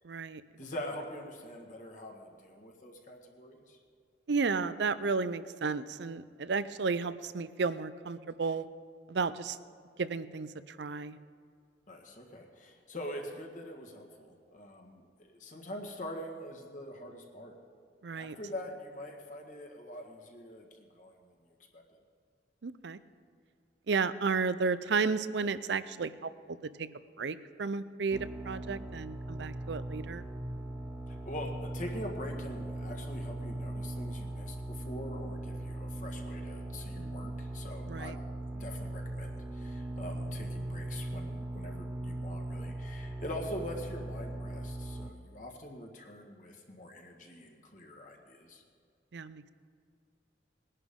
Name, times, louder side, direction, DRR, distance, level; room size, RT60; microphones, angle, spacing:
voice 1, 0.0-0.4 4.3-8.7 9.1-9.6 10.0-11.2 18.0-18.4 22.6-23.0 23.9-26.9 27.2-30.2 37.0-37.2 37.9-38.2 49.1-49.5, right 4 dB, 70° right, 14 dB, 0.5 m, -33 dB
voice 2, 0.6-3.8 11.9-17.5 18.1-21.3 21.7-21.8 31.1-48.6, left 1 dB, 45° left, 2 dB, 1.6 m, -44 dB
sound 1, 28.1-45.1, right 1 dB, 10° right, 0.5 m, -39 dB
21.0 x 11.0 x 3.7 m, 2.2 s
head